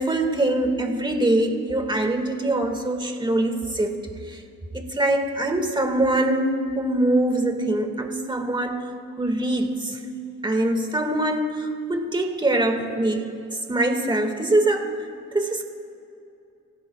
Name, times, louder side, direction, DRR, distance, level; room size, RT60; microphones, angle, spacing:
voice 1, 0.0-3.9 4.3-4.4 4.7-8.9 9.2-10.0 10.4-13.3 13.7-15.0 15.3-15.6, right 1 dB, 15° right, 4 dB, 1.9 m, -23 dB
29.0 x 16.0 x 2.4 m, 2.7 s
cardioid pair, 90°, 30 cm